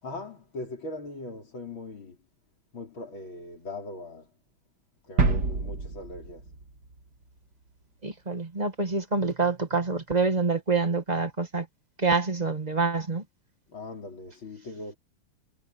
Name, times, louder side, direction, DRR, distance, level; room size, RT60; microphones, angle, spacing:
voice 1, 0.0-2.2 2.7-4.3 5.0-6.5 13.7-15.0, left 2 dB, 70° left, 5.1 m, -40 dB
sound 1, 5.2-7.0 7.3-7.4, right 4 dB, 50° right, 2.7 m, -28 dB
voice 2, 8.0-11.7 12.0-13.2, right 4 dB, 20° right, 1.5 m, -26 dB
omnidirectional pair, 2.3 m